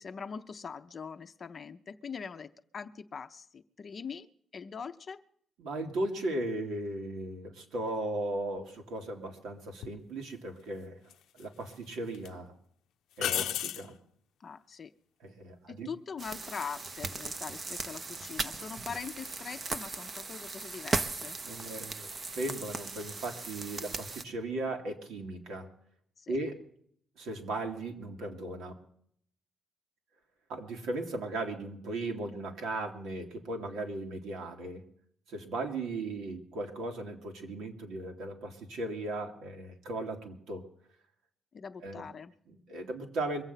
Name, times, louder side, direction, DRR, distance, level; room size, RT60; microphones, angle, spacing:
voice 1, 0.0-4.3 4.5-5.2 14.4-14.9 15.7-21.4 26.2-26.4 41.5-42.3, left 6 dB, 35° left, 7 dB, 0.6 m, -42 dB
voice 2, 5.6-11.0 11.3-12.5 13.2-14.0 15.2-15.9 21.5-25.7 26.3-26.6 27.2-28.8 30.5-34.8 35.3-40.6 41.8-42.0 42.5-43.4, right 2 dB, 85° right, 3 dB, 2.6 m, -37 dB
sound 1, 9.8-10.0 11.1-11.7 12.1-12.3 13.2-13.9 17.0-17.4, left 11 dB, 80° left, 0.6 m, -33 dB
sound 2, 16.2-24.2, right 3 dB, 30° right, 0.7 m, -38 dB
23.0 x 8.0 x 5.7 m, 0.64 s
cardioid pair, 130°, 0 cm